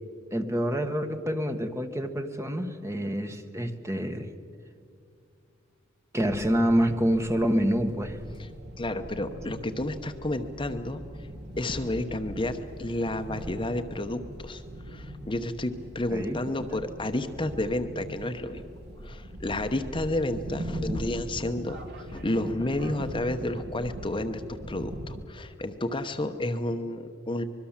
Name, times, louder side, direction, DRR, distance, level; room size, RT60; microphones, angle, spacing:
voice 1, 0.3-4.3 6.1-8.2 16.1-16.4 18.5-18.6, equal, 15° right, 6 dB, 1.3 m, -27 dB
sound 1, 6.2-25.3, equal, 50° right, 1.8 m, -41 dB
voice 2, 8.8-11.3 11.6-18.6 19.0-21.8 22.1-27.4, left 1 dB, 25° left, 7 dB, 0.9 m, -31 dB
24.5 x 22.5 x 7.3 m, 2.3 s
head